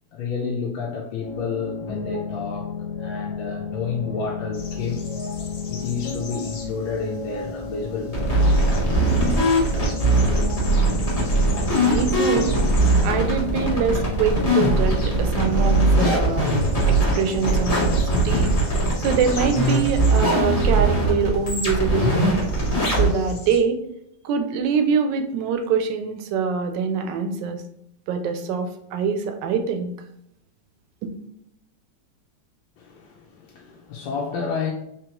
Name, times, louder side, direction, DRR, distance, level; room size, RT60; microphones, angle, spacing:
voice 1, 0.1-2.7 3.0-5.0 5.7-8.6 9.0-9.3 32.8-34.7, left 5 dB, 85° left, 1.4 m, -30 dB
sound 1, 1.2-18.2, left 4 dB, 50° left, 1.3 m, -33 dB
sound 2, 4.5-23.6, left 2 dB, 65° left, 0.8 m, -39 dB
sound 3, 8.1-23.1, right 1 dB, 25° left, 0.9 m, -20 dB
voice 2, 11.8-12.6 13.0-16.5 16.9-17.9 18.2-18.5 19.0-22.4 23.0-23.8 24.2-27.6 28.1-29.9 31.0-31.1, right 6 dB, 75° right, 1.1 m, -24 dB
3.8 x 3.1 x 2.9 m
omnidirectional pair, 2.1 m